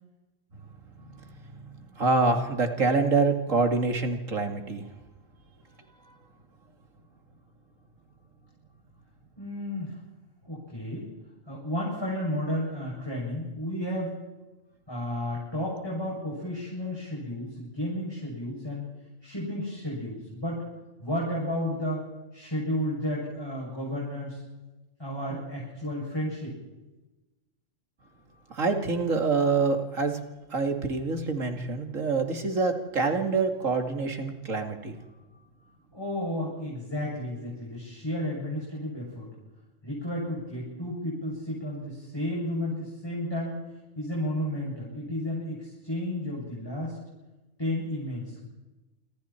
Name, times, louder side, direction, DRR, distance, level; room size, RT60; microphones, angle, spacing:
voice 1, 1.2-4.9 28.5-30.2 30.5-34.9, right 4 dB, 80° right, 5 dB, 2.8 m, -26 dB
voice 2, 9.4-10.0 10.4-11.1 11.5-14.2 14.9-18.9 19.2-20.6 21.0-22.0 22.3-24.4 25.0-26.6 35.9-39.3 39.8-43.6 44.0-47.0 47.6-48.4, left 1 dB, 20° left, -5 dB, 7.6 m, -32 dB
27.5 x 26.0 x 4.5 m, 1.1 s
omnidirectional pair, 1.3 m